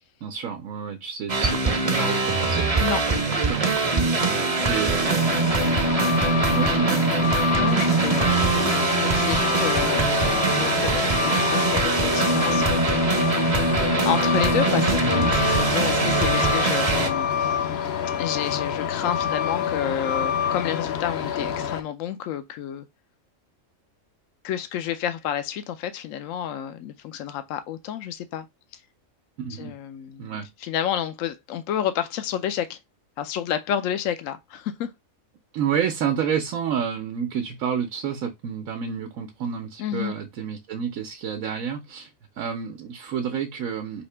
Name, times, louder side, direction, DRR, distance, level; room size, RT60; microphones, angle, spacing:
voice 1, 0.2-2.8 3.2-3.6 4.2-5.2 6.5-7.0 29.4-29.7 30.2-30.5 35.5-42.1 42.4-44.0, right 7 dB, 75° right, 1.1 m, -29 dB
sound 1, 1.3-17.1, right 3 dB, 35° right, 0.7 m, -22 dB
Truck, 5.1-21.8, left 8 dB, 60° left, 0.8 m, -27 dB
voice 2, 7.5-13.3 14.0-17.6 18.2-22.9 24.4-28.5 28.7-28.8 29.5-30.3 30.6-32.8 33.2-34.9 39.8-40.2, left 10 dB, 75° left, 1.0 m, -30 dB
5.0 x 2.8 x 3.3 m
omnidirectional pair, 1.4 m